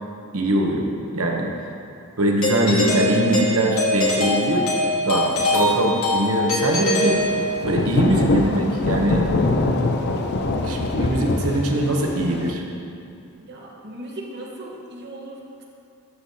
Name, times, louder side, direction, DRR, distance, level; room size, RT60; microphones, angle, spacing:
voice 1, 0.3-0.9 1.1-1.5 2.2-4.7 5.0-7.2 7.6-9.2 10.5-12.6, right 1 dB, 70° right, 1 dB, 0.9 m, -22 dB
Doorbell, 2.4-7.8, left 1 dB, 65° left, 1.4 m, -23 dB
Thunder / Rain, 7.0-12.5, left 2 dB, 50° left, 0.4 m, -23 dB
voice 2, 13.4-15.6, right 1 dB, 50° right, -2 dB, 1.2 m, -37 dB
11.0 x 6.4 x 2.7 m, 2.5 s
head